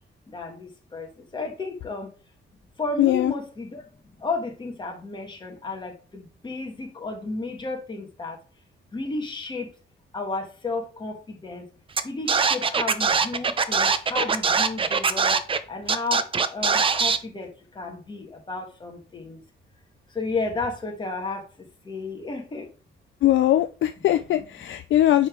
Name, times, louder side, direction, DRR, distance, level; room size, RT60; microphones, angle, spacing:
voice 1, 0.3-2.1 2.8-3.8 4.1-8.4 8.9-9.7 10.1-11.7 12.0-15.4 15.7-19.4 20.1-22.7, left 3 dB, 20° left, 1.4 m, -33 dB
voice 2, 3.0-3.3 23.2-25.3, left 13 dB, 70° left, 0.4 m, -21 dB
Scratching (performance technique), 12.0-12.1 12.3-15.6 15.9-17.2, right 5 dB, 25° right, 0.5 m, -22 dB
9.1 x 3.6 x 3.6 m
wide cardioid pair, 160°, 20 cm